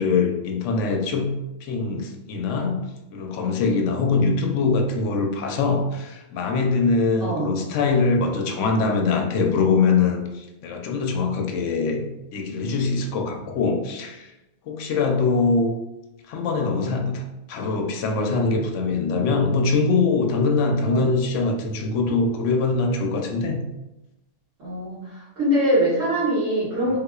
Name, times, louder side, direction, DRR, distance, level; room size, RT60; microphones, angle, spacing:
voice 1, 0.0-2.8 3.1-12.1 12.3-14.3 14.7-15.7 16.3-23.6 26.9-27.0, left 4 dB, 75° left, 3 dB, 0.9 m, -23 dB
voice 2, 7.2-7.5 20.8-21.1 24.6-27.0, equal, 75° right, -8 dB, 1.9 m, -23 dB
3.6 x 2.8 x 2.3 m, 0.96 s
omnidirectional pair, 1.3 m